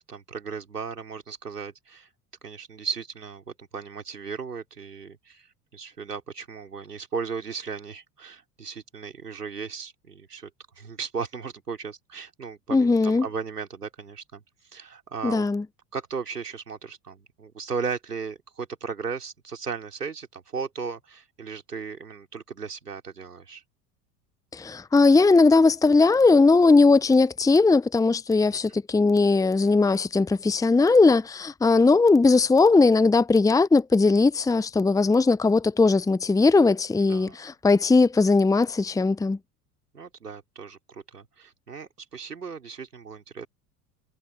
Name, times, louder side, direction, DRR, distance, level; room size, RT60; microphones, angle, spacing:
voice 1, 0.0-2.1 2.4-10.5 10.8-14.4 14.7-15.4 15.9-23.6 28.7-28.8 37.1-37.4 39.9-43.5, right 5 dB, 85° right, 4.4 m, -36 dB
voice 2, 12.7-13.3 15.2-15.6 24.5-39.4, left 3 dB, 5° left, 1.0 m, -19 dB
figure-of-eight pair, 75°, 46 cm